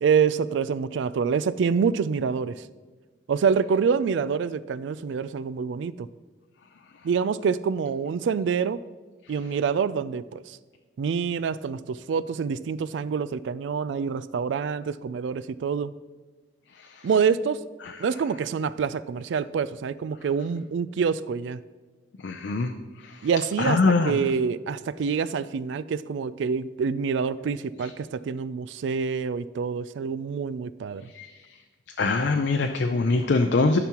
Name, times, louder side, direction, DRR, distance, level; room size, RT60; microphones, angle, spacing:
voice 1, 0.0-2.5 3.3-6.1 7.0-8.8 9.3-10.4 11.0-15.9 17.0-17.6 18.0-21.6 23.2-31.1, right 6 dB, 70° right, 17 dB, 0.3 m, -26 dB
voice 2, 22.2-22.7 23.6-24.2 31.2-31.3 32.0-33.8, left 3 dB, 60° left, 6 dB, 0.4 m, -22 dB
13.5 x 5.9 x 2.9 m, 1.3 s
head